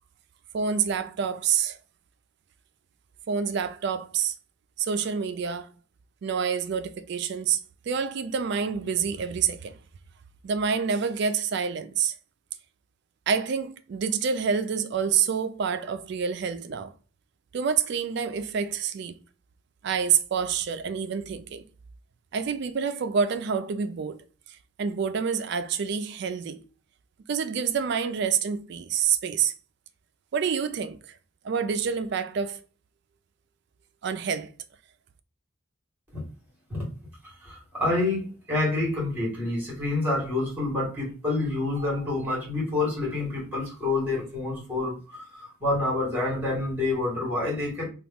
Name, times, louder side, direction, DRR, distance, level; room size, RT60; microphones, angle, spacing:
voice 1, 0.5-1.8 3.3-4.4 4.8-5.7 6.2-9.7 10.4-12.1 13.3-16.9 17.5-19.2 19.8-21.6 22.3-24.2 24.8-26.6 27.3-29.5 30.3-31.2 31.4-32.6 34.0-34.5, right 6 dB, 50° right, 0.3 m, -27 dB
voice 2, 37.4-47.9, left 2 dB, 10° right, 1.5 m, -28 dB
2.9 x 2.3 x 3.4 m
head